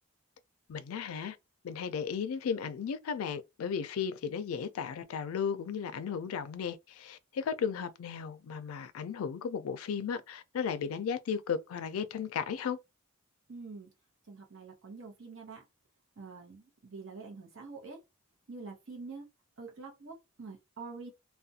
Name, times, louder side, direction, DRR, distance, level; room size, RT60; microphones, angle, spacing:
voice 1, 0.7-1.4 1.6-12.8, left 7 dB, 90° left, 0.4 m, -35 dB
voice 2, 13.5-13.9 14.3-15.6 16.2-18.0 18.5-19.3 19.6-21.1, right 4 dB, 65° right, 0.8 m, -46 dB
2.4 x 2.1 x 2.6 m
head